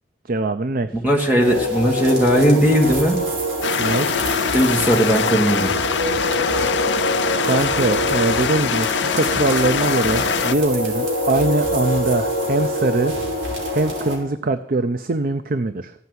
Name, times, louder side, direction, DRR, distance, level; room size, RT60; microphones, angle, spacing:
voice 1, 0.3-0.9 3.8-4.1 7.4-13.1 13.7-15.9, right 2 dB, 55° right, 10 dB, 0.6 m, -22 dB
voice 2, 1.0-3.2 4.5-5.8, equal, 10° right, 1 dB, 1.8 m, -17 dB
sound 1, 1.4-14.2, equal, 75° right, 4.5 m, -25 dB
sound 2, 3.6-10.5, left 6 dB, 85° left, 0.6 m, -23 dB
15.5 x 5.8 x 9.6 m, 0.74 s
head